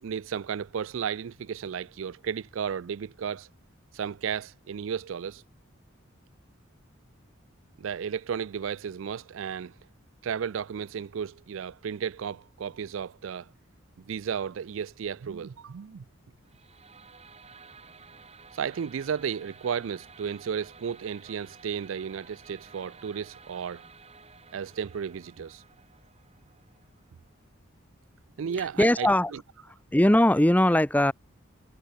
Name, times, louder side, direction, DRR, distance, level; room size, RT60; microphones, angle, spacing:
voice 1, 0.0-3.5 3.9-5.4 7.8-9.8 10.2-13.5 14.0-16.0 18.5-23.8 24.5-25.6 28.4-29.4, right 7 dB, 65° right, 0.4 m, -34 dB
sound 1, 16.4-27.5, right 5 dB, 30° right, 5.5 m, -53 dB
voice 2, 28.5-29.3 29.9-31.1, left 1 dB, 5° left, 0.8 m, -21 dB
head